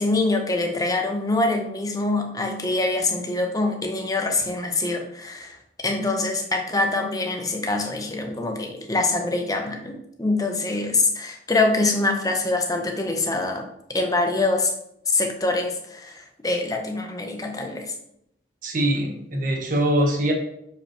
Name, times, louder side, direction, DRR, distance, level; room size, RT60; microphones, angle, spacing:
voice 1, 0.0-14.7 15.1-17.9, left 2 dB, 20° left, 3 dB, 0.8 m, -24 dB
voice 2, 18.6-20.3, right 1 dB, 50° right, 2 dB, 1.1 m, -22 dB
6.1 x 5.1 x 3.0 m, 0.76 s
head